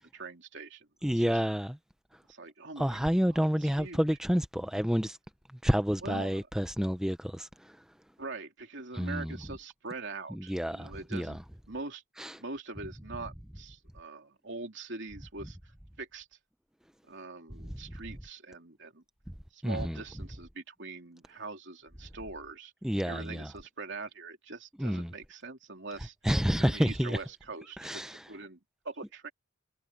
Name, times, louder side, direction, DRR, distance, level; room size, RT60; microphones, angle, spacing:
voice 1, 0.0-0.9 1.2-1.4 2.3-4.0 6.0-6.3 8.2-11.4 11.7-12.0 12.4-15.6 16.0-16.3 17.1-19.0 19.5-22.7 23.0-26.1 26.6-28.6 28.8-29.3, right 3 dB, 60° right, 3.2 m, -43 dB
voice 2, 1.0-1.8 2.8-5.2 5.6-7.8 8.9-9.3 10.3-11.4 12.2-12.4 19.6-20.0 22.8-23.5 24.8-25.1 26.2-27.2 27.8-28.2, equal, 5° right, 0.5 m, -29 dB
head